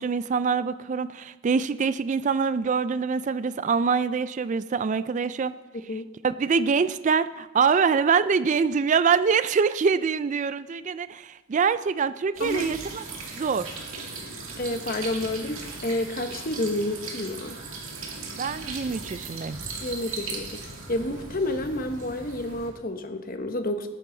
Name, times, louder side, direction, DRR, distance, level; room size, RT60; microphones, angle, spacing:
voice 1, 0.0-5.5 6.2-13.0 13.4-13.7 18.4-19.6, right 5 dB, 35° right, 14 dB, 0.3 m, -24 dB
voice 2, 5.7-6.1 12.4-12.7 14.6-17.6 19.8-23.9, left 1 dB, 40° left, 7 dB, 1.0 m, -30 dB
sound 1, 12.4-22.7, right 3 dB, 65° right, 2.3 m, -38 dB
19.0 x 9.5 x 3.9 m, 1.1 s
head